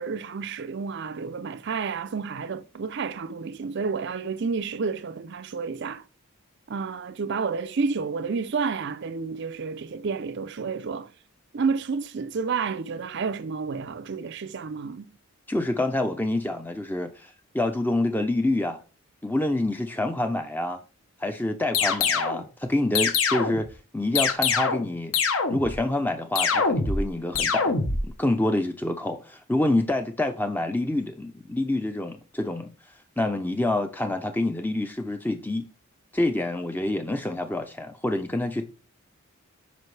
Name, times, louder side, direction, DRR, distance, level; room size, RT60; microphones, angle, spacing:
voice 1, 0.0-6.0 6.7-11.1 11.5-15.1, right 5 dB, 50° right, 0.5 m, -30 dB
voice 2, 15.5-18.8 19.2-20.8 21.2-23.7 23.9-25.1 25.5-32.7 33.2-35.7 36.1-38.7, left 1 dB, 10° left, 0.5 m, -27 dB
sound 1, 21.7-22.4 22.9-23.7 24.1-24.9 25.1-25.8 26.3-27.1 27.3-28.0, left 5 dB, 70° left, 1.2 m, -24 dB
9.2 x 5.2 x 3.3 m
head